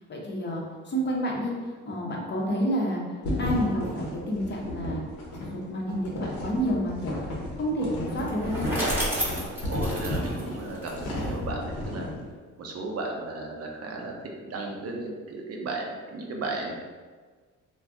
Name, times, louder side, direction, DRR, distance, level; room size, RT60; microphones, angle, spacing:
voice 1, 0.1-1.5 1.8-3.0 3.4-5.0 5.4-7.2 7.6-8.7, equal, 35° left, -2 dB, 0.7 m, -29 dB
sound 1, 3.2-12.2, left 1 dB, 80° left, 0.9 m, -33 dB
Bicycle, 8.1-11.3, right 1 dB, 5° right, 0.9 m, -32 dB
voice 2, 9.3-12.1 12.6-14.1 14.4-16.7, right 2 dB, 55° right, 0 dB, 0.6 m, -35 dB
2.4 x 2.2 x 3.6 m, 1.5 s
cardioid pair, 90°, 30 cm